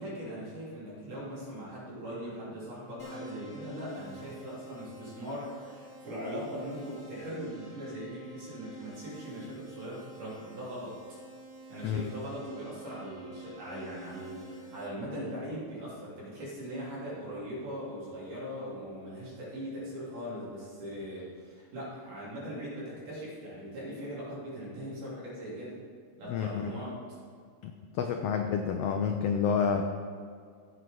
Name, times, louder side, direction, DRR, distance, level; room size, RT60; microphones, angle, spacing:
voice 1, 0.0-11.0 11.7-25.8 26.2-27.0, equal, 80° right, -7 dB, 4.7 m, -40 dB
Keyboard (musical), 3.0-14.9, right 2 dB, 20° left, 3.5 m, -48 dB
voice 2, 26.3-26.7 27.6-29.8, left 7 dB, 90° left, 5 dB, 1.3 m, -29 dB
15.5 x 7.9 x 3.8 m, 2.1 s
omnidirectional pair, 3.5 m